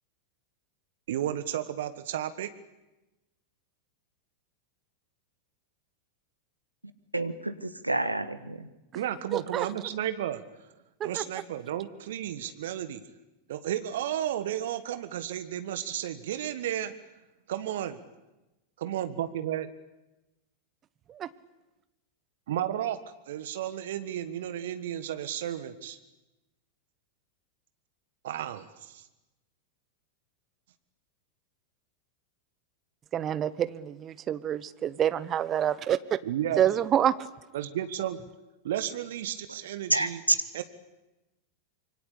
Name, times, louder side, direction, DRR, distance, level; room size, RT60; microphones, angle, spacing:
voice 1, 1.1-2.5 8.9-10.4 11.0-13.0 13.5-16.9 17.5-18.0 18.8-19.7 22.5-26.0 28.2-29.1 36.2-36.6 37.5-38.2 38.6-40.2 40.5-40.6, right 11 dB, 55° right, 12 dB, 1.5 m, -33 dB
voice 2, 7.1-8.7 39.9-40.4, right 2 dB, 85° right, 11 dB, 1.6 m, -28 dB
voice 3, 9.3-9.7 11.0-11.2 21.1-21.3 33.1-36.0 36.6-37.3, right 10 dB, 30° right, 15 dB, 1.2 m, -27 dB
26.0 x 24.0 x 8.5 m, 1.0 s
figure-of-eight pair, 90°, 0 cm